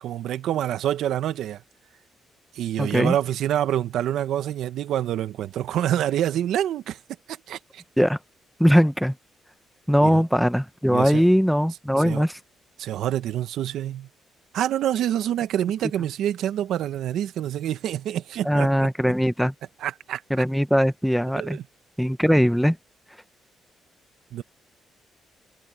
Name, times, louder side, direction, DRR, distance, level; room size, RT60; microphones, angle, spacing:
voice 1, 0.0-1.6 2.5-7.0 7.3-7.8 10.0-10.2 10.9-11.2 12.0-12.2 12.8-14.1 14.5-18.9 19.8-20.2 21.3-21.6 24.3-24.4, right 11 dB, 80° right, 1.0 m, -26 dB
voice 2, 2.8-3.1 8.0-8.2 8.6-9.1 9.9-12.4 18.4-19.5 20.3-21.6 22.0-22.8, equal, ahead, 0.9 m, -20 dB
cardioid pair, 90°, 0 cm